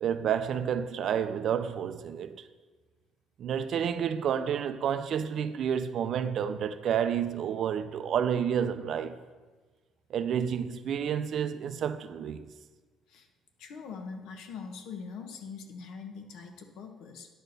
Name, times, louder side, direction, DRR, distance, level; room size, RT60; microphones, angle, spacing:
voice 1, 0.0-2.5 3.4-9.2 10.1-12.5, right 8 dB, 50° right, 0.5 m, -30 dB
voice 2, 13.6-17.3, left 5 dB, 80° left, 1.2 m, -42 dB
10.0 x 4.3 x 6.6 m
cardioid pair, 145°, 0 cm